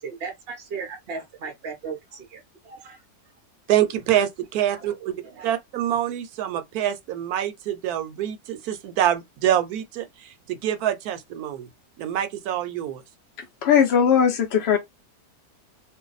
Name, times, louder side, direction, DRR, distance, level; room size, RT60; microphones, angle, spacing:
voice 1, 0.0-3.0 4.7-5.5, right 5 dB, 55° right, 0.7 m, -37 dB
voice 2, 3.7-5.1 5.4-11.7 12.0-13.0, right 11 dB, 75° right, 1.1 m, -25 dB
voice 3, 13.6-14.8, left 7 dB, 60° left, 0.7 m, -18 dB
2.6 x 2.3 x 3.9 m
omnidirectional pair, 1.7 m